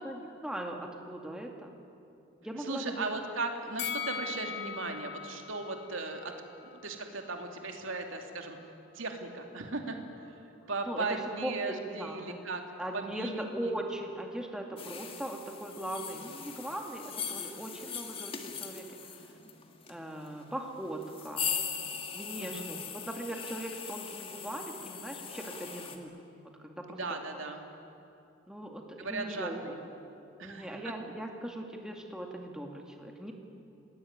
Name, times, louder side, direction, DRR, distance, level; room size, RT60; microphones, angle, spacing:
voice 1, 0.0-1.7 2.4-3.1 10.8-12.4 12.8-18.9 19.9-21.6 22.1-26.1 26.4-27.2 28.5-29.8 30.4-33.3, right 1 dB, 5° right, 1 dB, 2.3 m, -39 dB
voice 2, 2.7-6.3 6.6-8.6 8.9-10.3 10.7-12.6 12.9-13.7 22.4-22.7 26.9-27.7 29.0-29.7 30.4-30.8, right 3 dB, 75° right, 3 dB, 2.8 m, -37 dB
Bell, 3.8-7.0 7.3-7.4, left 7 dB, 60° left, 2.0 m, -40 dB
sound 1, 14.8-26.0, left 6 dB, 25° left, 1.7 m, -40 dB
27.5 x 19.5 x 9.6 m, 2.7 s
head